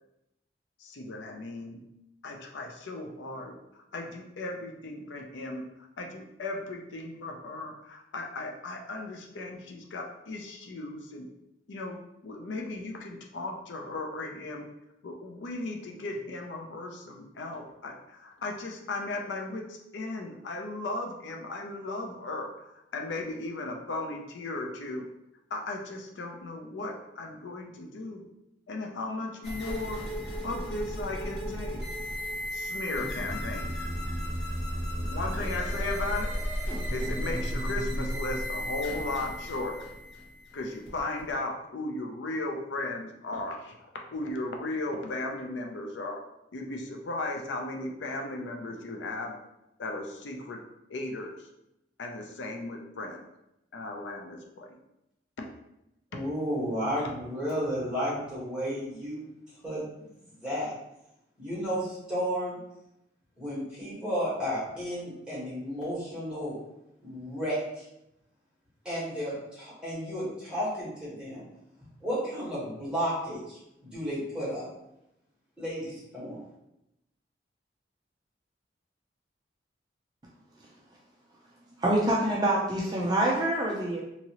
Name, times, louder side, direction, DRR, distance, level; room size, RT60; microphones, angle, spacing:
voice 1, 0.8-1.8 2.2-5.6 6.0-11.3 11.7-12.0 12.2-14.7 15.0-25.0 25.5-28.2 28.7-30.1 30.4-31.8 32.5-33.7 35.0-36.3 36.9-39.8 40.5-43.7 44.1-46.2 46.5-49.3 49.8-50.6 50.9-51.3 52.0-53.3 53.7-54.8, left 2 dB, 85° left, 2 dB, 0.5 m, -36 dB
sound 1, 29.4-41.3, equal, 60° left, 1.3 m, -34 dB
voice 2, 56.1-59.3 59.6-59.8 60.4-60.7 61.4-62.6 63.4-66.5 67.0-67.6 68.8-71.4 72.0-74.6 75.6-76.4, equal, 5° right, -9 dB, 1.3 m, -32 dB
voice 3, 81.8-84.0, right 1 dB, 20° right, -4 dB, 0.3 m, -26 dB
2.9 x 2.7 x 2.8 m, 0.86 s
head